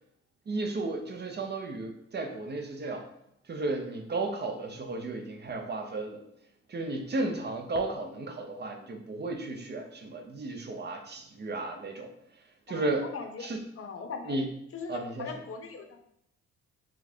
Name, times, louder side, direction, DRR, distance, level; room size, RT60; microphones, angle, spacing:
voice 1, 0.5-3.1 3.5-6.2 6.7-12.1 12.7-13.1 13.4-13.6 14.3-14.5 14.9-15.3, right 2 dB, 35° right, 4 dB, 0.8 m, -34 dB
voice 2, 12.7-13.5 13.8-14.4 14.7-16.0, left 5 dB, 50° left, 5 dB, 0.8 m, -40 dB
4.5 x 2.4 x 4.4 m, 0.74 s
cardioid pair, 90°, 30 cm